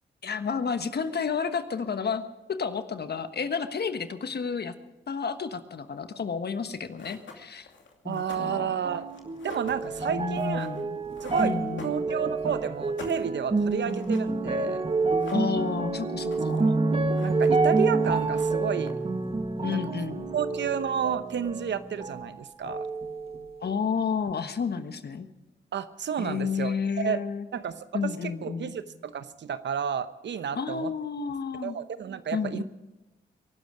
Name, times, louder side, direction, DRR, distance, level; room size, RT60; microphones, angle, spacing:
voice 1, 0.2-2.2 2.5-4.7 5.1-7.7 8.0-8.8 10.1-11.0 11.4-12.0 15.3-16.7 19.6-20.2 23.6-25.3 26.2-27.5 27.9-28.8 30.5-31.8 32.3-32.6, left 6 dB, 55° left, 9 dB, 1.4 m, -31 dB
sound 1, 6.6-6.7 7.0-12.4 12.7-14.3 14.6-14.7 14.9-15.8 16.1-16.7 17.0-17.7 18.0-19.2, left 5 dB, 75° left, 2.6 m, -47 dB
voice 2, 8.0-9.1 9.4-10.7 11.2-11.5 11.8-14.8 16.5-16.8 17.2-18.9 19.7-19.8 20.3-22.9 25.7-27.2 27.5-30.9 31.6-32.6, right 8 dB, 70° right, 13 dB, 0.9 m, -31 dB
sound 2, 8.8-22.3 22.6-23.6 24.3-24.4, right 3 dB, 30° right, 1.7 m, -28 dB
23.0 x 12.0 x 5.1 m, 1.0 s
supercardioid pair, 45°, 19 cm